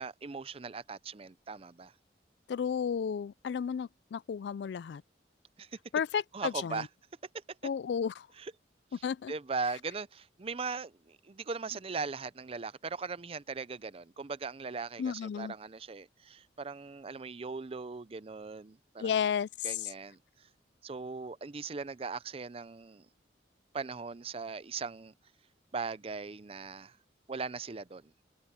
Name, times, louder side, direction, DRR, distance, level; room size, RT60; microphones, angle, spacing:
voice 1, 0.0-1.9 5.6-5.7 6.3-6.9 8.4-8.5 9.3-19.1 19.6-20.2 20.8-23.1 23.7-25.1 25.7-27.0 27.3-28.1, right 4 dB, 30° right, 0.5 m, -39 dB
voice 2, 2.5-5.0 5.9-6.9 7.6-8.3 9.0-9.3 15.0-15.5 19.0-19.9, left 7 dB, 65° left, 0.3 m, -33 dB
head